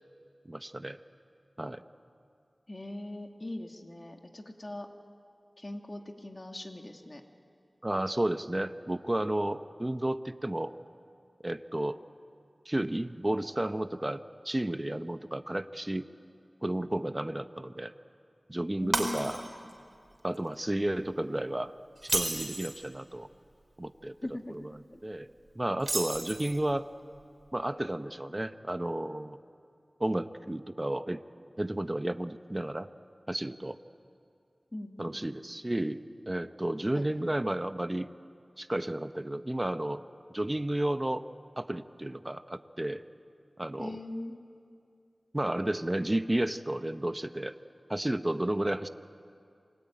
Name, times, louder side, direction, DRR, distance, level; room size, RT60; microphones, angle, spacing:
voice 1, 0.4-1.0 1.6-1.8 7.8-10.7 11.4-12.0 12.7-16.1 16.6-17.9 18.5-19.4 20.2-21.7 22.0-23.3 23.8-24.2 24.5-24.7 25.0-25.3 25.5-26.9 27.5-29.4 30.0-31.2 31.6-32.9 33.3-33.8 35.0-38.1 38.6-40.0 40.3-41.2 41.6-43.0 43.6-44.0 45.3-47.5 47.9-48.9, right 1 dB, 25° right, 10 dB, 0.9 m, -32 dB
voice 2, 2.7-4.9 5.6-7.2 18.8-19.4 24.2-24.6 24.9-25.0 34.7-35.2 36.9-37.3 43.8-44.4, left 1 dB, 40° left, 3 dB, 2.4 m, -40 dB
Shatter, 18.9-19.7 20.1-20.4 22.0-22.8 25.8-26.7, right 2 dB, 55° right, 3.8 m, -32 dB
28.0 x 22.0 x 9.1 m, 2.5 s
wide cardioid pair, 45°, 0 cm